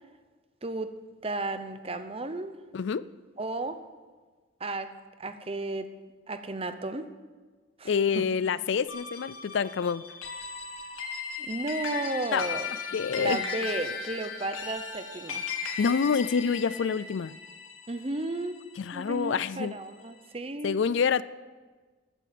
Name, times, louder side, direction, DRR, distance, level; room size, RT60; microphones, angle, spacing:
voice 1, 0.6-1.0 1.2-2.5 3.4-3.8 4.6-4.9 5.2-5.9 6.3-7.1 7.8-8.2 11.4-15.5 17.9-18.7 18.9-20.8, right 2 dB, 25° right, 10 dB, 0.8 m, -34 dB
voice 2, 2.7-3.1 7.9-10.1 12.3-12.6 12.9-13.4 15.8-17.3 18.8-19.8 20.6-21.2, left 6 dB, 60° left, 18 dB, 0.4 m, -27 dB
sound 1, 8.9-19.5, left 5 dB, 85° left, 2.1 m, -37 dB
14.0 x 9.1 x 9.2 m, 1.4 s
head